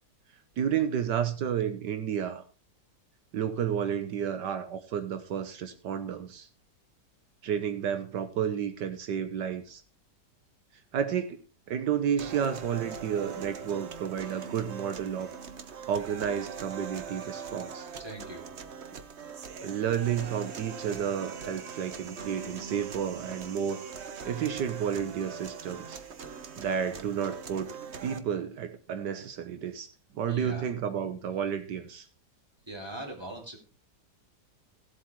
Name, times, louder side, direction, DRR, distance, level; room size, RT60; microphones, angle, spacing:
voice 1, 0.6-2.4 3.3-6.5 7.4-9.8 10.9-11.4 11.7-15.3 15.9-17.9 19.6-23.9 24.2-26.0 26.6-29.9 30.1-32.1, right 8 dB, 80° right, 9 dB, 1.6 m, -31 dB
sound 1, 12.2-28.2, right 6 dB, 45° right, 1.1 m, -42 dB
voice 2, 18.0-18.5 30.2-30.7 32.7-33.6, right 1 dB, 15° right, 1 dB, 3.2 m, -41 dB
15.5 x 7.9 x 4.6 m, 0.36 s
omnidirectional pair, 1.8 m